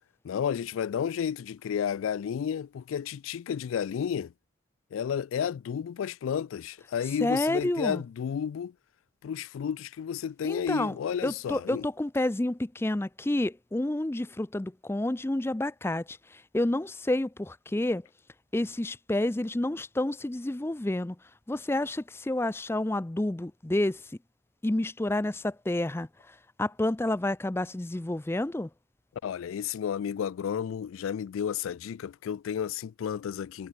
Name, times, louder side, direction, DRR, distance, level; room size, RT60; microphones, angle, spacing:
voice 1, 0.2-4.3 4.9-8.7 9.2-11.8 29.2-33.7, left 8 dB, 85° left, 0.3 m, -32 dB
voice 2, 7.2-8.0 10.4-11.0 11.2-18.1 18.5-21.2 21.5-24.1 24.6-28.7, left 1 dB, 10° left, 0.4 m, -29 dB
head